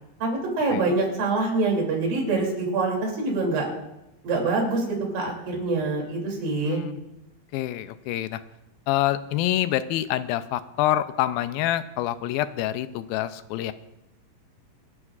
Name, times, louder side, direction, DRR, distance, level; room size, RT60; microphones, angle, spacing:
voice 1, 0.2-3.7 4.2-6.8, right 3 dB, 70° right, -1 dB, 4.6 m, -25 dB
voice 2, 6.6-7.0 7.5-8.4 8.9-13.7, left 13 dB, 85° left, 13 dB, 2.4 m, -26 dB
26.0 x 11.0 x 2.4 m, 0.92 s
omnidirectional pair, 4.3 m